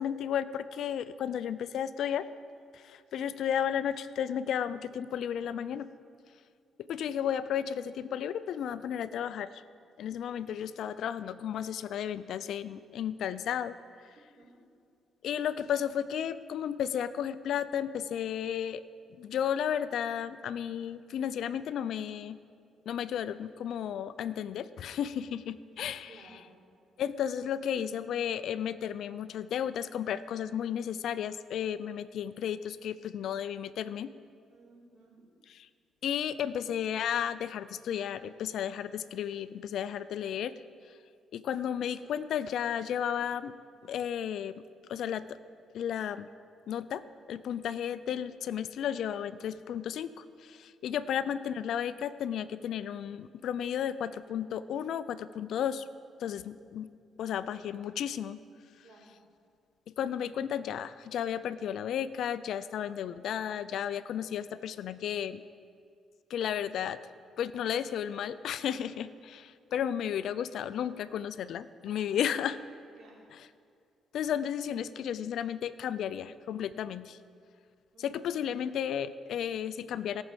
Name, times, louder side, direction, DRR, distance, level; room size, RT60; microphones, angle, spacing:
voice 1, 0.0-2.3 2.7-5.9 6.9-9.5 10.0-13.8 15.2-18.8 19.2-22.4 22.9-26.5 27.0-34.1 35.5-35.7 36.0-40.5 41.3-43.5 43.8-44.6 44.9-45.4 45.7-46.3 46.7-55.9 56.2-56.9 57.2-58.4 60.0-65.4 66.3-67.0 67.4-72.6 73.3-73.5 74.1-77.2 78.0-80.2, left 9 dB, 75° left, 15 dB, 0.4 m, -33 dB
voice 2, 26.1-26.4 34.5-35.3 58.8-59.1 71.8-72.0 73.0-73.1 77.9-78.1, right 3 dB, 60° right, -4 dB, 4.2 m, -56 dB
17.5 x 6.2 x 7.3 m, 2.3 s
cardioid pair, 90°, 0 cm